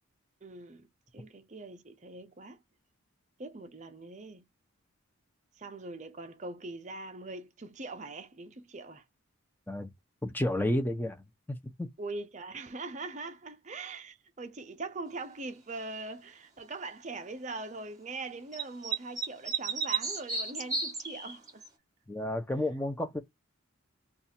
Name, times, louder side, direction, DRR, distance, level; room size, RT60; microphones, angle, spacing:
voice 1, 0.4-2.6 3.4-4.5 5.6-9.0 12.0-21.6, right 3 dB, 35° right, 0.6 m, -42 dB
voice 2, 10.2-11.2 11.8-11.9 22.1-23.2, left 1 dB, 10° left, 0.6 m, -31 dB
sound 1, 18.5-21.7, right 4 dB, 15° right, 1.0 m, -33 dB
2.7 x 2.4 x 4.2 m
head